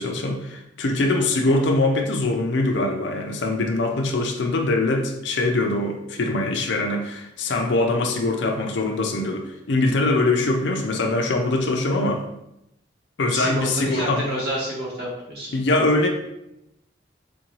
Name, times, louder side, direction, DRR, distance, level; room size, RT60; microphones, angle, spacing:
voice 1, 0.0-12.2 13.2-14.2 15.5-16.1, left 2 dB, 70° left, 3 dB, 0.5 m, -22 dB
voice 2, 13.3-15.5, equal, 55° right, -4 dB, 1.2 m, -29 dB
3.7 x 2.6 x 3.0 m, 0.83 s
head